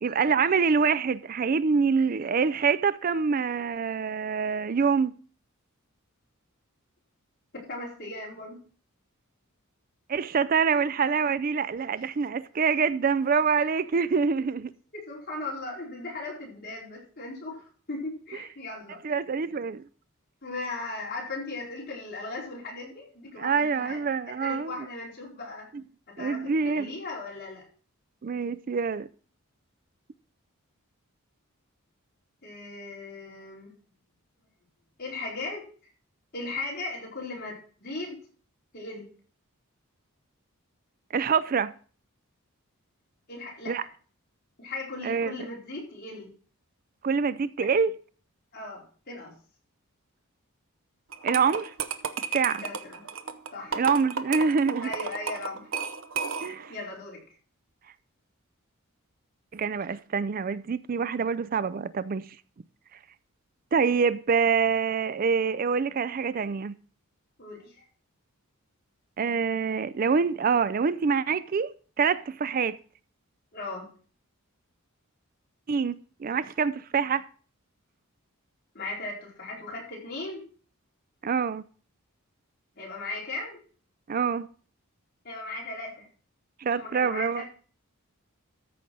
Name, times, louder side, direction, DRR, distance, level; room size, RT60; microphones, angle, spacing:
voice 1, 0.0-5.1 10.1-14.7 19.0-19.8 23.4-24.7 26.2-26.9 28.2-29.1 41.1-41.7 43.7-43.8 45.0-45.3 47.0-47.9 51.2-51.7 52.2-52.6 53.8-54.9 56.4-56.7 59.5-62.3 63.7-66.7 69.2-71.7 72.0-72.8 75.7-75.9 76.2-77.2 81.2-81.6 84.1-84.5 86.6-87.4, right 5 dB, 40° right, 0.4 m, -25 dB
voice 2, 7.5-8.6 14.9-19.2 20.4-24.0 24.4-25.7 26.1-27.6 32.4-33.7 35.0-35.7 36.3-38.2 38.7-39.1 43.3-43.7 44.6-46.3 48.5-49.3 52.6-53.0 53.5-53.8 54.8-55.7 56.7-57.2 67.4-67.8 73.5-73.9 78.7-80.4 82.7-83.6 85.2-86.1 86.7-87.5, left 2 dB, 45° left, 4.6 m, -37 dB
sound 1, 51.1-56.7, right 6 dB, 60° right, 0.8 m, -33 dB
13.5 x 5.3 x 6.2 m
head